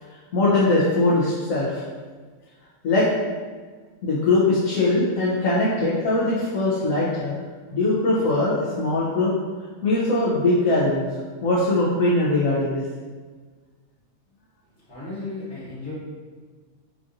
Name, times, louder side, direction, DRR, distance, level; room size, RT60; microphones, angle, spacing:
voice 1, 0.3-1.8 2.8-3.1 4.0-7.3 7.7-9.4 9.8-11.1 11.4-12.8, left 2 dB, 75° left, -8 dB, 1.1 m, -21 dB
voice 2, 14.9-15.9, left 3 dB, 55° left, -10 dB, 1.8 m, -34 dB
4.6 x 2.5 x 2.6 m, 1.5 s
omnidirectional pair, 1.4 m